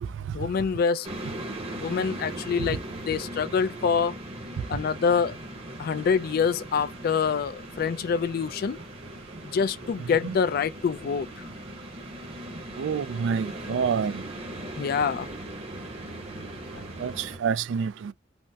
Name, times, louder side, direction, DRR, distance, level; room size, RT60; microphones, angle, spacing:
voice 1, 0.3-1.1 1.7-2.8 3.1-4.1 4.7-5.4 5.8-8.8 9.5-11.5 14.8-15.3, left 6 dB, 50° left, 0.3 m, -26 dB
sound 1, 1.0-17.4, right 1 dB, 30° right, 0.8 m, -39 dB
voice 2, 12.8-14.2 17.0-18.1, right 6 dB, 70° right, 0.3 m, -28 dB
3.4 x 2.0 x 2.7 m
head